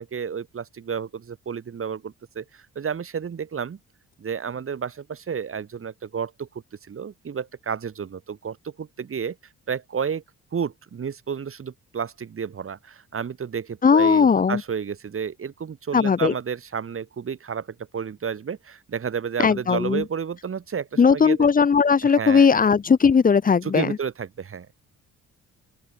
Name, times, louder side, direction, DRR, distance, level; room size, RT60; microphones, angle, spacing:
voice 1, 0.0-3.8 4.2-6.5 6.8-9.4 9.7-10.2 10.5-17.7 17.9-21.5 22.0-22.5 23.6-24.7, right 7 dB, 45° right, 4.6 m, -31 dB
voice 2, 13.8-14.6 15.9-16.3 19.4-20.0 21.0-23.9, left 6 dB, 30° left, 0.8 m, -18 dB
open air
cardioid pair, 90°, 30 cm